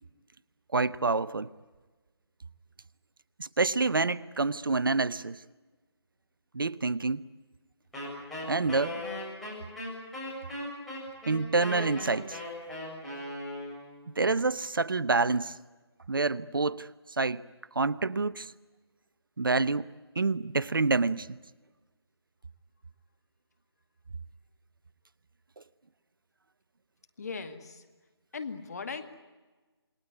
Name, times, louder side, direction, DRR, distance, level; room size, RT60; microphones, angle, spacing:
voice 1, 0.7-1.5 3.4-5.4 6.5-7.2 8.5-9.0 11.3-12.4 14.2-15.5 16.1-16.9 17.2-17.4 17.7-18.5 19.4-19.9 20.2-21.4, right 3 dB, 55° right, 18 dB, 0.8 m, -27 dB
Wind instrument woodwind instrument, 7.9-14.0, left 1 dB, ahead, 7.3 m, -38 dB
voice 2, 27.2-27.8 28.3-29.1, left 5 dB, 35° left, 7 dB, 2.2 m, -38 dB
28.5 x 20.0 x 9.6 m, 1.3 s
figure-of-eight pair, 160°, 14 cm